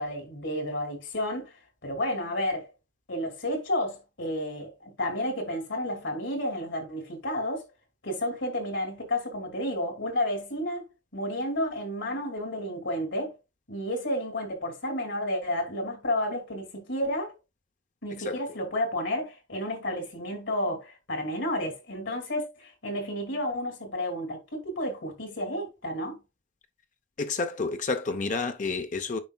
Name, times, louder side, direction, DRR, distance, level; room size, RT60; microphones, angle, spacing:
voice 1, 0.0-1.5 1.8-2.7 3.1-7.7 8.0-10.9 11.1-13.3 13.7-17.3 18.0-26.2, left 1 dB, 70° left, 2.6 m, -31 dB
voice 2, 27.2-29.2, left 4 dB, 40° left, 0.6 m, -30 dB
9.3 x 5.4 x 2.3 m
head